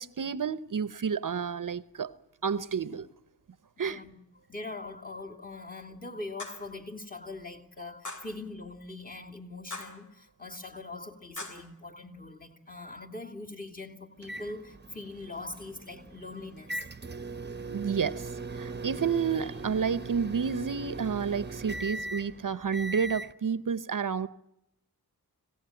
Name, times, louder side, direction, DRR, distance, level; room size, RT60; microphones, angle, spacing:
voice 1, 0.0-2.1 2.4-3.1 3.8-4.0 17.7-24.3, right 6 dB, 55° right, 16 dB, 0.8 m, -30 dB
voice 2, 3.8-4.1 4.5-16.9, left 2 dB, 25° left, 7 dB, 2.6 m, -42 dB
sound 1, 6.4-6.7 8.0-8.4 9.7-10.1 11.4-11.7, left 2 dB, 50° left, 3.1 m, -41 dB
sound 2, 14.2-23.3, right 3 dB, 30° right, 1.0 m, -40 dB
26.0 x 16.5 x 9.0 m, 0.84 s
wide cardioid pair, 80°, 37 cm